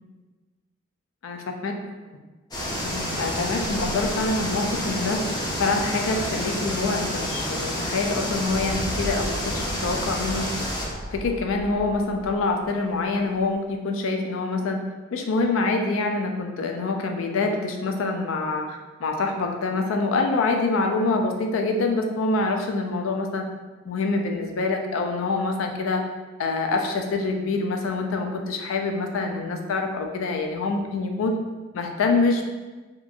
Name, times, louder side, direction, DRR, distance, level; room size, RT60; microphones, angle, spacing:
voice 1, 1.2-1.7 2.8-10.5 11.1-14.8 15.1-23.4 23.9-26.0 26.4-31.4 31.7-32.4, left 3 dB, 80° left, 3 dB, 0.4 m, -25 dB
sound 1, 2.5-10.9, equal, 20° left, 0.4 m, -29 dB
sound 2, 3.0-3.4 3.6-4.8 5.1-6.2 6.5-7.6 7.9-9.0, equal, 40° left, 0.9 m, -43 dB
sound 3, 8.4-13.6, equal, 50° right, 0.4 m, -37 dB
2.9 x 2.3 x 2.5 m, 1.3 s
head